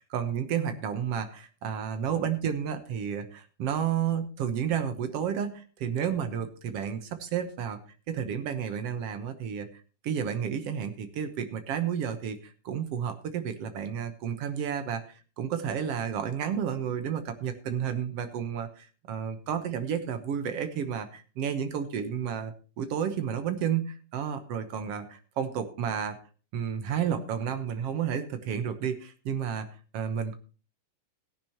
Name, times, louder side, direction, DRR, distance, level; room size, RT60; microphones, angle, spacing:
voice 1, 0.0-7.8 8.1-9.7 10.0-26.2 26.5-29.7 29.9-30.4, right 8 dB, 65° right, 8 dB, 1.7 m, -31 dB
17.0 x 10.5 x 2.9 m, 0.36 s
omnidirectional pair, 3.8 m